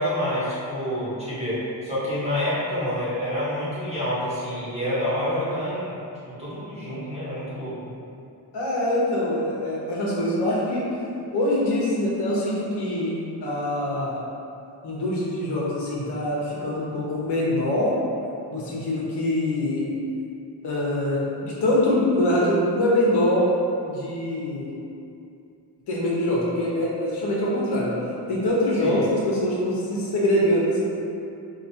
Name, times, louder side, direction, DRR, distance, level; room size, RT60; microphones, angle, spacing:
voice 1, 0.0-5.9 6.3-7.9 28.8-29.0, equal, 15° right, -10 dB, 1.1 m, -28 dB
voice 2, 8.5-10.9 11.3-14.2 14.8-17.9 18.5-19.9 20.6-23.5 23.8-24.7 25.9-28.0 28.3-30.8, left 1 dB, 70° left, -5 dB, 1.1 m, -24 dB
4.9 x 2.4 x 2.8 m, 2.6 s
wide cardioid pair, 160°, 41 cm